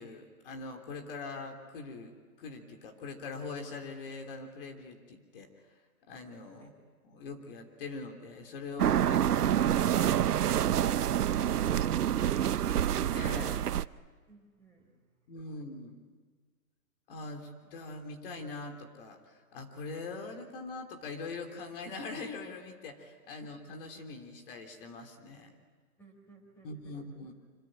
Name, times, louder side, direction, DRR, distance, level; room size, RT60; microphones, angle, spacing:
voice 1, 0.0-5.5 6.0-6.7 7.1-10.3 13.1-13.7 15.3-16.0 17.1-25.5 26.6-27.3, left 3 dB, 35° left, 5 dB, 3.3 m, -43 dB
sound 1, 8.8-13.9, right 10 dB, 85° right, 0.8 m, -27 dB
voice 2, 11.5-13.0 14.3-15.3 26.0-27.3, left 1 dB, 5° left, 2 dB, 4.3 m, -55 dB
26.0 x 24.5 x 8.9 m, 1.5 s
hypercardioid pair, 165°, 45 cm